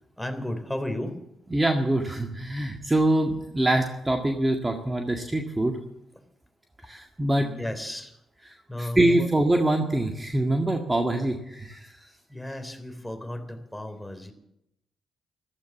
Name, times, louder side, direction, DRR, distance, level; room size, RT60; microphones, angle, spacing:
voice 1, 0.2-1.2 6.2-6.3 7.4-9.3 12.3-14.3, left 1 dB, 5° left, 7 dB, 3.5 m, -34 dB
voice 2, 1.5-5.8 6.9-7.5 8.8-11.9, right 1 dB, 20° right, 3 dB, 1.8 m, -24 dB
14.5 x 13.5 x 7.3 m, 0.83 s
hypercardioid pair, 45°, 0 cm